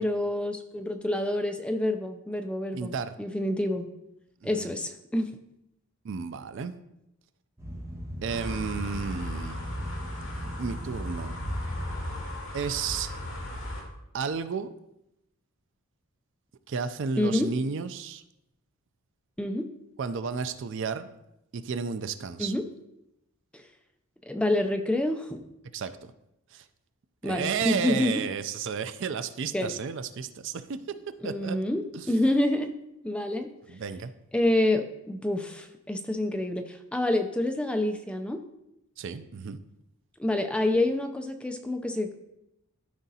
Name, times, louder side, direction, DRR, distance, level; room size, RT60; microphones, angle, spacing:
voice 1, 0.0-3.9 4.4-5.3 17.2-17.5 19.4-19.7 22.4-22.6 24.3-25.4 27.2-28.1 29.5-29.8 31.2-32.7 33.0-33.5 34.3-38.4 40.2-42.2, left 1 dB, 5° left, 6 dB, 0.4 m, -27 dB
voice 2, 2.7-3.1 4.4-4.7 6.0-6.7 8.2-9.6 10.6-11.3 12.5-13.1 14.1-14.7 16.7-18.2 20.0-21.1 21.5-22.5 25.7-26.1 26.5-26.6 27.2-30.8 31.2-31.6 31.9-32.1 33.7-34.1 39.0-39.6, right 6 dB, 55° right, 12 dB, 0.4 m, -32 dB
sound 1, 7.6-12.2, equal, 10° right, 1.0 m, -39 dB
sound 2, 8.3-13.8, left 1 dB, 65° left, 2.1 m, -36 dB
13.0 x 5.0 x 2.8 m, 0.86 s
head